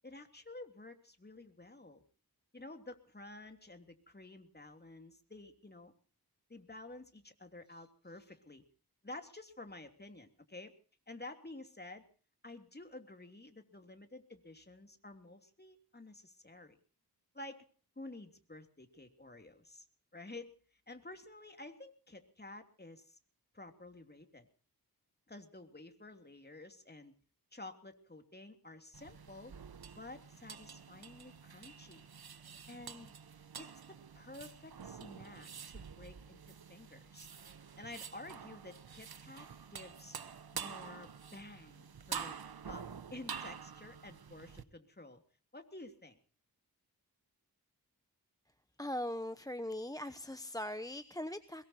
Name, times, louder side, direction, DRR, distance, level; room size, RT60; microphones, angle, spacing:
voice 1, 0.0-2.0 2.5-5.9 6.5-8.6 9.0-10.7 11.1-12.1 12.4-16.8 17.3-17.6 18.0-19.8 20.1-20.6 20.9-23.2 23.5-24.5 25.3-27.1 27.5-29.5 30.0-32.1 32.7-33.1 33.6-37.3 37.8-40.2 40.5-42.4 42.7-42.8 43.1-45.2 45.5-46.2, left 2 dB, 25° left, 6 dB, 3.1 m, -51 dB
sound 1, 28.9-44.6, right 7 dB, 70° right, 1.2 m, -48 dB
voice 2, 48.8-51.7, left 1 dB, 10° left, 12 dB, 0.9 m, -40 dB
22.5 x 21.5 x 2.9 m, 0.40 s
wide cardioid pair, 65°, 39 cm